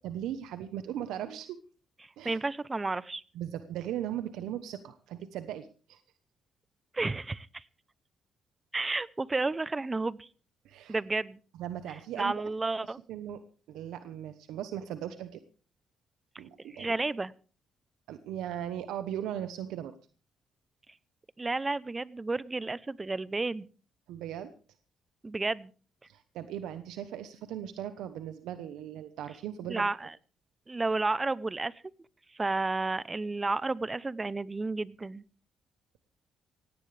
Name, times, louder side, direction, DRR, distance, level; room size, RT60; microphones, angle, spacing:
voice 1, 0.0-1.6 2.2-2.4 3.3-6.0 10.6-10.9 11.6-12.4 12.8-13.4 13.7-15.4 16.4-16.9 18.1-19.9 24.1-24.5 26.1-29.9, right 10 dB, 90° right, 10 dB, 1.0 m, -38 dB
voice 2, 2.2-3.2 6.9-7.6 8.7-10.3 10.9-11.4 12.2-13.0 16.7-17.3 21.4-23.7 25.2-25.7 29.7-30.1 30.7-31.7 32.3-35.2, right 3 dB, 20° right, 19 dB, 0.7 m, -31 dB
18.5 x 16.5 x 3.4 m, 0.38 s
cardioid pair, 90°, 0 cm